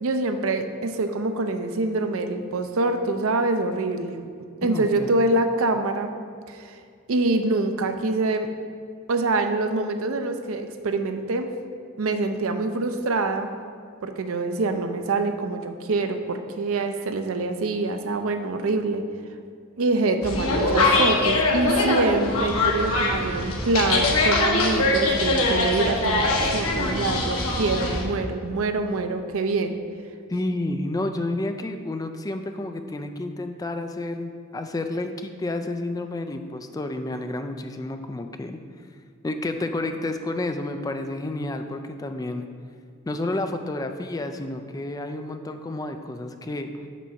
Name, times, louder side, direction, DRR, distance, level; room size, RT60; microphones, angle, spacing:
voice 1, 0.0-4.3 4.6-6.1 6.5-6.8 7.1-8.5 9.1-11.5 12.0-13.5 14.0-19.0 19.8-29.8, right 2 dB, 75° right, 7 dB, 0.5 m, -25 dB
voice 2, 4.6-5.1 30.3-38.6 39.2-42.5 43.1-46.9, left 2 dB, 15° left, 7 dB, 0.3 m, -30 dB
sound 1, 20.2-28.0, left 2 dB, 80° left, 1.0 m, -22 dB
6.1 x 4.2 x 5.7 m, 2.2 s
head